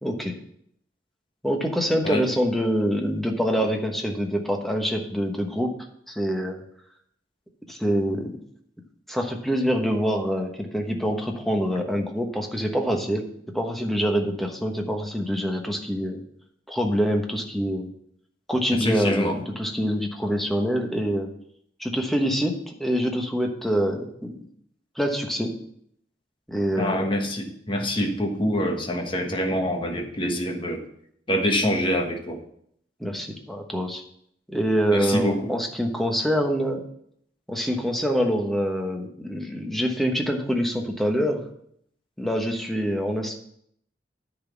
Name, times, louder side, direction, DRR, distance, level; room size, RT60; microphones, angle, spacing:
voice 1, 0.0-0.4 1.4-5.7 6.1-6.6 7.7-8.4 9.1-13.3 13.5-16.2 16.7-17.9 18.5-21.3 21.8-24.4 25.0-25.6 26.5-27.1 33.0-34.0 34.5-36.8 37.5-41.4 42.2-43.3, equal, ahead, 2 dB, 1.1 m, -25 dB
voice 2, 18.7-19.4 26.7-30.8 31.3-32.4 34.9-35.5, equal, 30° left, 3 dB, 1.3 m, -25 dB
10.0 x 4.1 x 7.3 m, 0.69 s
head